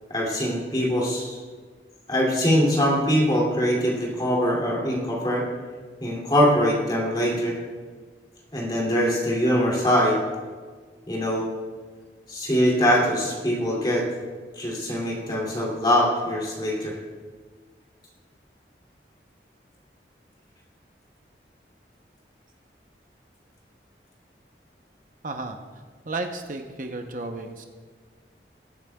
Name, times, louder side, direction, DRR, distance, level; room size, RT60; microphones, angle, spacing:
voice 1, 0.1-1.4 2.1-5.5 6.0-7.6 8.5-10.2 11.1-11.5 12.3-14.1 14.6-17.0, equal, 25° left, -3 dB, 2.5 m, -23 dB
voice 2, 25.2-25.6 26.0-27.6, right 2 dB, 50° right, 5 dB, 0.7 m, -33 dB
20.5 x 8.8 x 2.3 m, 1.5 s
head